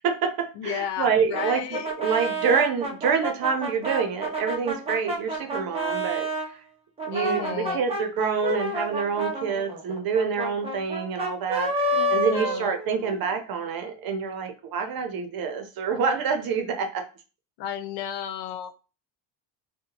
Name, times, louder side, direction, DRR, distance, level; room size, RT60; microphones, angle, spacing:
voice 1, 0.0-6.6 7.0-17.0, right 6 dB, 55° right, 5 dB, 0.7 m, -27 dB
voice 2, 0.6-1.9 7.1-7.8 11.9-12.8 17.6-18.8, left 9 dB, 75° left, 10 dB, 0.5 m, -33 dB
Brass instrument, 1.3-6.5 7.0-13.3, right 1 dB, 15° right, 0.5 m, -29 dB
2.7 x 2.2 x 2.8 m, 0.34 s
cardioid pair, 140°, 44 cm